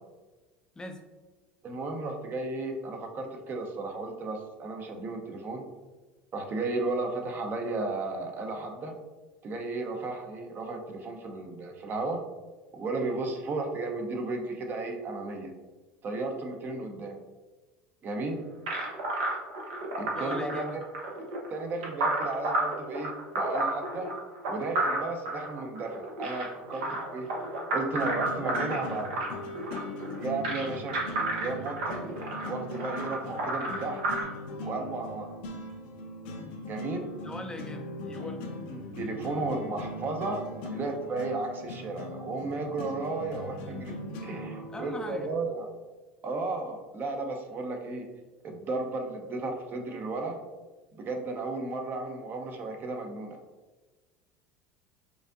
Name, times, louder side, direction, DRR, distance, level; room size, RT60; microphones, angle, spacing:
voice 1, 1.6-5.6 6.3-8.9 9.4-12.2 12.7-15.5 16.0-17.2 18.0-18.4 20.0-20.6 21.5-24.1 24.5-26.9 27.1-27.3 27.7-29.2 30.2-31.0 31.4-32.0 32.5-34.0 34.6-35.3 36.7-37.1 38.7-43.9 44.2-45.7 46.2-48.1 48.4-50.4 50.9-53.4, right 3 dB, 40° right, 3 dB, 0.7 m, -34 dB
sound 1, 18.7-34.2, right 2 dB, 75° right, 0.9 m, -32 dB
voice 2, 20.1-20.8 26.8-27.0 37.2-38.4 44.7-45.3, left 1 dB, 15° left, 4 dB, 0.4 m, -40 dB
sound 2, 26.6-45.4, left 1 dB, 75° left, 0.5 m, -40 dB
4.8 x 2.6 x 2.5 m, 1.2 s
hypercardioid pair, 90°, 5 cm